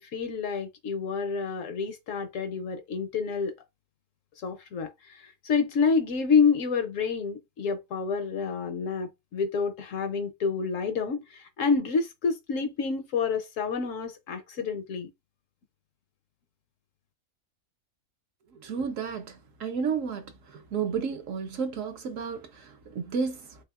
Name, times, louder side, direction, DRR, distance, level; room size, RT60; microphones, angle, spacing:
voice 1, 0.0-3.5 4.4-15.1, left 5 dB, 70° left, 0.9 m, -28 dB
voice 2, 18.5-23.6, right 6 dB, 65° right, 0.9 m, -32 dB
3.4 x 3.3 x 2.3 m
omnidirectional pair, 1.6 m